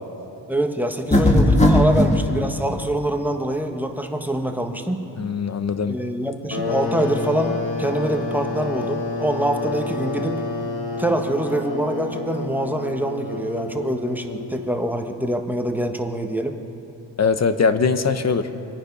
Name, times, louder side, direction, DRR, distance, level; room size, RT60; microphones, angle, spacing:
voice 1, 0.5-5.1 5.9-10.4 11.0-16.6, right 1 dB, 5° right, 4 dB, 1.3 m, -25 dB
sound 1, 1.1-2.2, left 1 dB, 15° left, 2.0 m, -16 dB
voice 2, 5.2-6.0 17.2-18.5, left 5 dB, 35° left, 10 dB, 1.0 m, -21 dB
sound 2, 6.5-14.9, left 3 dB, 60° left, 3.6 m, -29 dB
25.5 x 9.5 x 5.5 m, 2.8 s
cardioid pair, 90°, 43 cm